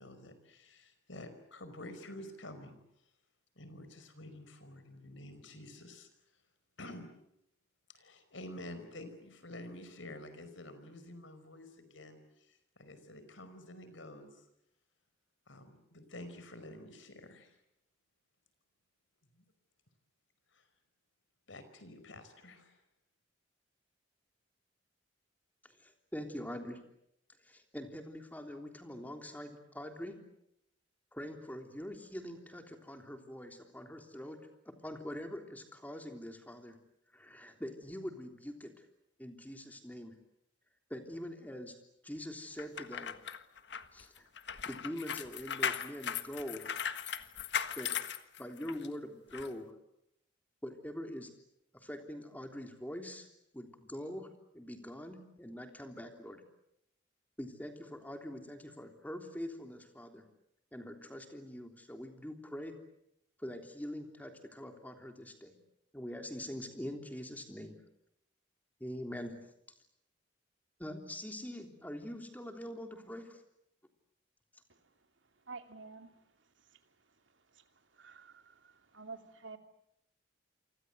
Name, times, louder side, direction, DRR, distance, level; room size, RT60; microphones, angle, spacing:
voice 1, 0.0-2.8 3.6-6.1 6.8-7.1 7.9-12.2 12.5-14.4 15.5-17.6 19.3-19.5 20.5-20.6 21.5-22.7, left 1 dB, 80° left, 10 dB, 5.1 m, -49 dB
voice 2, 25.6-26.8 27.4-30.2 31.1-34.4 34.6-36.8 37.1-38.8 39.2-40.1 40.9-41.7 42.0-43.2 43.9-44.3 44.6-46.7 47.8-47.9 48.4-49.7 50.6-51.3 51.7-53.3 53.5-54.3 54.5-56.4 57.4-60.2 60.7-62.7 63.4-65.5 65.9-67.8 68.8-69.4 70.8-73.4, equal, 10° left, 5 dB, 3.4 m, -44 dB
sound 1, 42.6-48.9 49.3-49.5, left 7 dB, 60° left, 1.5 m, -38 dB
voice 3, 75.5-76.1 77.5-77.6 77.9-79.6, right 4 dB, 75° right, 6 dB, 2.7 m, -49 dB
29.0 x 25.0 x 8.0 m, 0.79 s
head